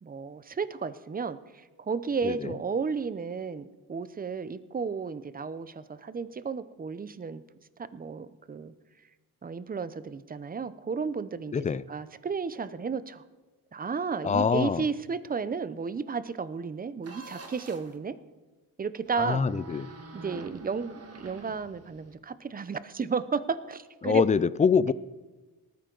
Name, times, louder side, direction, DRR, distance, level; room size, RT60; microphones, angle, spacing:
voice 1, 0.0-1.4 1.8-7.4 7.9-8.7 9.4-11.6 11.9-13.2 13.7-18.2 18.8-19.4 20.1-24.2, right 5 dB, 25° right, 14 dB, 0.6 m, -33 dB
voice 2, 11.5-11.8 14.2-14.9 19.2-19.9 24.0-24.9, left 6 dB, 20° left, 17 dB, 0.4 m, -24 dB
sound 1, 17.0-18.0 19.1-22.2, right 3 dB, 40° right, 1.5 m, -46 dB
19.0 x 13.5 x 3.9 m, 1.3 s
cardioid pair, 115°, 38 cm